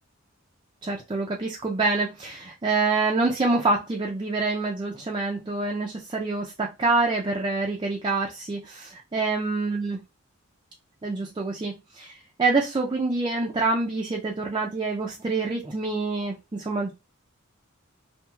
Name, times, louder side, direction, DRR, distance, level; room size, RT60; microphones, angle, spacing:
voice 1, 0.8-10.0 11.0-16.9, right 3 dB, 25° right, -1 dB, 0.4 m, -26 dB
3.0 x 2.4 x 2.2 m, 0.25 s
head